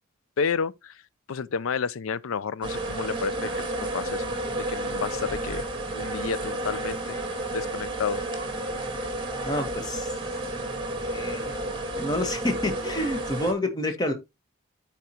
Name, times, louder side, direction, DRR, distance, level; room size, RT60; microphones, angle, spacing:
voice 1, 0.4-0.9 1.3-3.5 3.9-4.2 4.5-5.6 5.9-7.2 7.5-8.2, left 6 dB, 80° left, 0.4 m, -30 dB
sound 1, 2.6-13.5, right 1 dB, 25° right, 1.5 m, -31 dB
voice 2, 9.4-10.1 11.0-11.5 12.0-14.1, left 1 dB, 20° left, 1.2 m, -28 dB
12.5 x 4.5 x 2.8 m
head